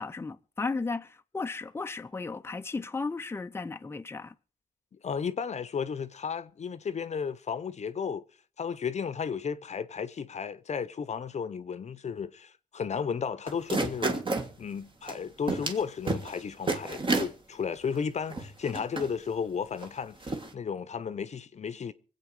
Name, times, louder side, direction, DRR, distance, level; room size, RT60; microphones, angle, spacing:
voice 1, 0.0-4.3, left 4 dB, 15° left, 0.6 m, -35 dB
voice 2, 5.0-8.2 8.6-14.2 14.6-21.9, left 6 dB, 50° left, 0.8 m, -34 dB
sound 1, 13.5-14.5 15.1-15.2 15.5-15.8 16.1-16.4 16.7-17.3 17.9-18.0 18.3-19.1 19.8-19.9 20.2-20.5, right 3 dB, 35° right, 1.8 m, -30 dB
24.5 x 8.3 x 4.8 m
cardioid pair, 105°, 15 cm